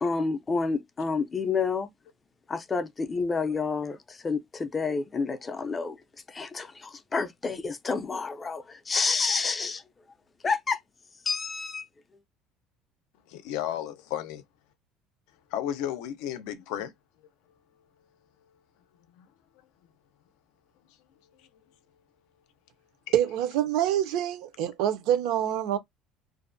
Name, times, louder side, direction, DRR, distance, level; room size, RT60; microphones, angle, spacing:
voice 1, 0.0-1.9 2.5-6.0 6.3-9.8 10.4-10.8 11.3-11.8, left 4 dB, 15° left, 0.4 m, -29 dB
voice 2, 13.3-14.4 15.5-16.9 19.2-19.3, left 11 dB, 80° left, 0.4 m, -33 dB
voice 3, 23.1-25.8, right 11 dB, 70° right, 0.5 m, -26 dB
2.5 x 2.0 x 2.5 m
cardioid pair, 165°, 0 cm